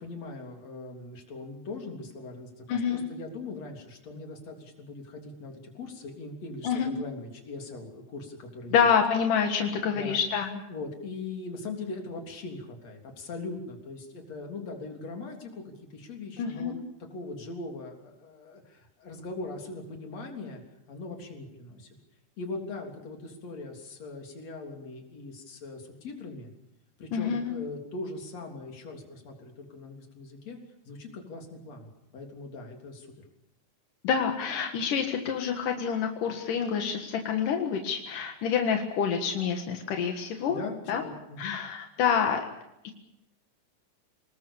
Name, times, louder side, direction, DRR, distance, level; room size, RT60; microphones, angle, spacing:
voice 1, 0.0-8.7 9.9-10.2 10.7-16.7 17.1-20.6 20.9-22.0 22.4-26.5 27.0-30.6 30.9-33.1 40.5-41.6, left 3 dB, 55° left, 2 dB, 4.6 m, -40 dB
voice 2, 2.7-3.0 6.6-6.9 8.7-10.6 16.4-16.8 27.1-27.5 34.0-40.6 40.9-41.0 41.4-42.4, left 7 dB, 85° left, 4 dB, 3.3 m, -27 dB
26.0 x 20.0 x 7.1 m, 0.84 s
omnidirectional pair, 3.6 m